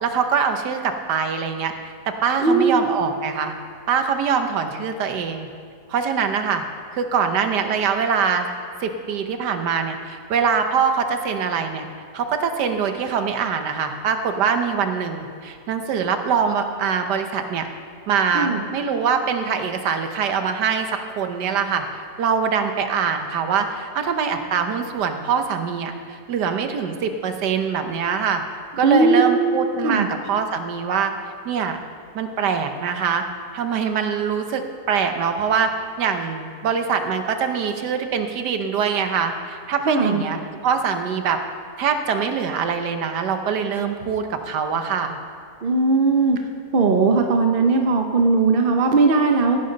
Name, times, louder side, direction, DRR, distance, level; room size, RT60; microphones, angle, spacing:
voice 1, 0.0-1.7 2.1-3.5 3.9-5.5 5.9-6.6 6.9-8.5 8.8-11.9 12.1-17.7 18.1-21.8 22.2-28.4 28.8-31.1 31.4-31.8 32.1-33.2 33.5-35.7 36.0-41.4 41.8-45.2, right 6 dB, 85° right, 7 dB, 1.5 m, -23 dB
voice 2, 2.4-2.8 18.3-18.6 28.8-29.6 29.8-30.1 39.9-40.2 45.6-46.4 46.7-49.6, right 3 dB, 45° right, 4 dB, 0.8 m, -18 dB
17.0 x 10.5 x 3.9 m, 2.1 s
omnidirectional pair, 1.7 m